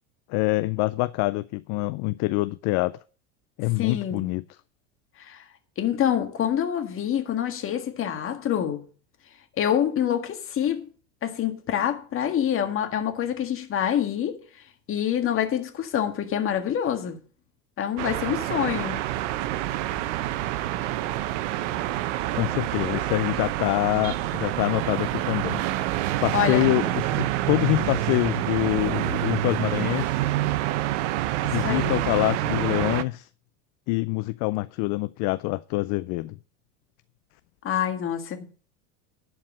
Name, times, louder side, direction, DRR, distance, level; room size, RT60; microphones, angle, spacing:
voice 1, 0.3-3.0 3.6-4.4 22.4-25.6 26.2-30.3 31.4-33.3 33.9-36.4, left 21 dB, 50° left, 0.5 m, -25 dB
voice 2, 3.8-4.2 5.2-5.4 5.8-8.9 9.6-10.9 11.2-14.4 14.9-17.2 17.8-19.2 26.1-26.6 31.6-32.0 37.6-38.5, left 9 dB, 35° left, 1.7 m, -26 dB
sound 1, 18.0-33.0, right 14 dB, 70° right, 0.9 m, -27 dB
11.0 x 4.7 x 7.4 m
supercardioid pair, 115°, 37 cm